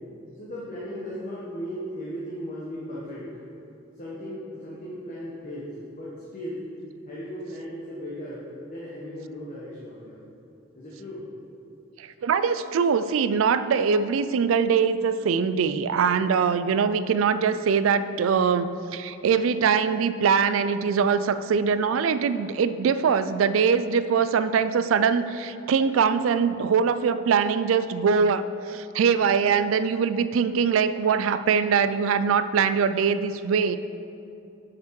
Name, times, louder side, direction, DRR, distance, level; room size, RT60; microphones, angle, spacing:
voice 1, 0.3-3.3 3.9-6.7 7.1-10.3 10.7-11.3, equal, 40° left, -7 dB, 1.2 m, -37 dB
voice 2, 12.0-33.8, right 6 dB, 75° right, 13 dB, 0.3 m, -22 dB
8.7 x 5.9 x 4.7 m, 2.8 s
head